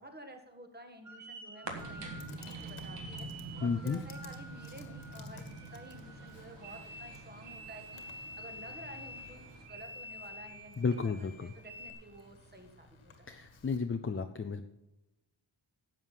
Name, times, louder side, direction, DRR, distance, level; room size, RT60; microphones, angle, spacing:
voice 1, 0.0-3.3 3.6-13.3, right 1 dB, 20° right, 5 dB, 1.6 m, -52 dB
sound 1, 1.1-11.9, right 1 dB, 35° right, 2.1 m, -49 dB
sound 2, 1.6-9.7, right 3 dB, 65° right, 2.0 m, -47 dB
Computer keyboard, 1.8-13.8, left 4 dB, 90° left, 1.6 m, -56 dB
voice 2, 3.6-4.0 10.8-11.5 13.3-14.6, left 5 dB, 30° left, 7 dB, 0.5 m, -33 dB
11.0 x 7.4 x 5.7 m, 0.96 s
wide cardioid pair, 120°, 47 cm